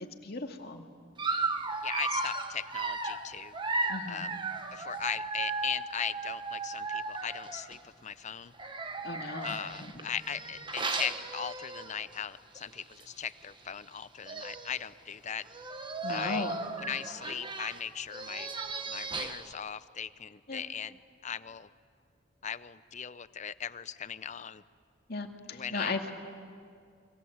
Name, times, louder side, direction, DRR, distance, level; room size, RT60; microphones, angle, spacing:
voice 1, 0.2-0.8 3.9-4.3 9.0-10.1 16.0-16.5 20.5-20.6 25.1-26.0, left 3 dB, 50° left, 3 dB, 2.2 m, -36 dB
Dog, 1.2-7.8 8.5-12.1 12.6-12.7 13.0-13.1 14.0-14.1 14.2-14.8 15.4-19.5, right 3 dB, 25° right, 1.3 m, -36 dB
voice 2, 1.8-3.5 4.1-4.4 4.7-8.5 9.4-15.4 16.1-16.5 16.8-18.5 18.9-21.7 22.4-24.6 25.5-26.1, left 8 dB, 35° left, 15 dB, 0.6 m, -38 dB
30.0 x 24.0 x 8.0 m, 2.2 s
head